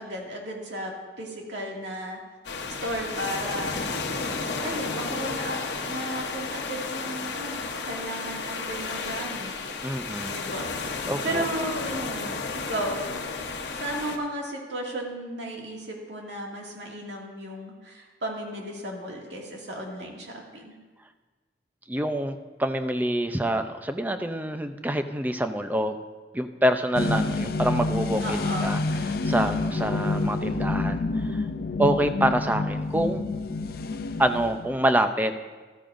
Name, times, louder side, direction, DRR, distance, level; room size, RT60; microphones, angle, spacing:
voice 1, 0.0-2.2 2.8-3.8 4.6-9.5 10.3-10.7 11.2-13.2 13.8-20.7 28.2-28.8, right 1 dB, 85° right, -1 dB, 2.2 m, -34 dB
sound 1, 2.4-14.2, left 4 dB, 85° left, 1.0 m, -32 dB
voice 2, 9.8-10.4 11.1-11.4 21.9-25.9 26.3-31.4 31.8-33.3 34.2-35.3, right 1 dB, 10° right, 8 dB, 0.5 m, -26 dB
sound 2, 26.9-34.8, left 3 dB, 60° left, 0.5 m, -28 dB
14.0 x 13.5 x 2.6 m, 1.3 s
head